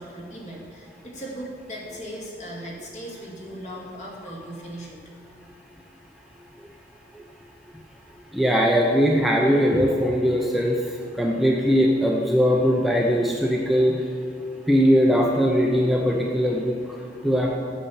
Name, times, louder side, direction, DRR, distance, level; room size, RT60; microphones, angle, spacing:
voice 1, 0.0-5.0, equal, 45° left, -4 dB, 2.3 m, -38 dB
voice 2, 8.3-14.0 14.4-17.6, equal, ahead, -1 dB, 0.7 m, -21 dB
8.3 x 7.2 x 7.1 m, 2.5 s
head